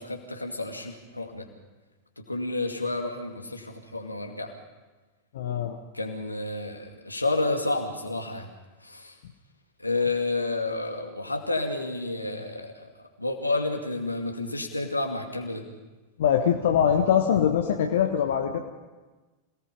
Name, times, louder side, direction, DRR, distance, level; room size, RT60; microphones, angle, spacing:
voice 1, 0.0-1.5 2.2-4.5 5.9-8.5 8.8-9.2 9.8-15.6, left 2 dB, 85° left, 3 dB, 2.5 m, -30 dB
voice 2, 5.3-5.8 16.2-18.6, left 8 dB, 60° left, 4 dB, 1.4 m, -23 dB
27.5 x 18.0 x 5.4 m, 1.2 s
figure-of-eight pair, 90°, 0 cm